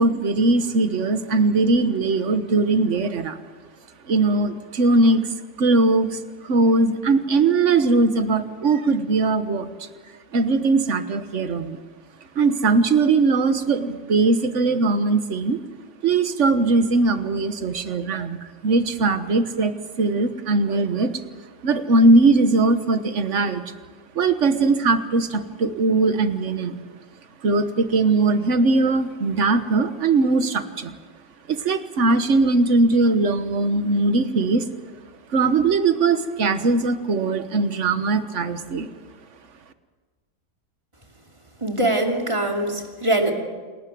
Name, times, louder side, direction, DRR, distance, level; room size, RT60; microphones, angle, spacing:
voice 1, 0.0-3.4 4.1-5.3 5.6-6.2 6.4-9.9 10.3-11.8 12.3-15.6 16.0-18.4 18.6-21.2 21.6-23.6 24.1-26.8 27.4-31.0 31.5-34.6 35.3-38.9, right 3 dB, 50° right, 10 dB, 1.5 m, -20 dB
voice 2, 41.6-43.3, right 1 dB, 15° right, 2 dB, 2.8 m, -22 dB
28.0 x 13.0 x 9.3 m, 1.4 s
omnidirectional pair, 1.7 m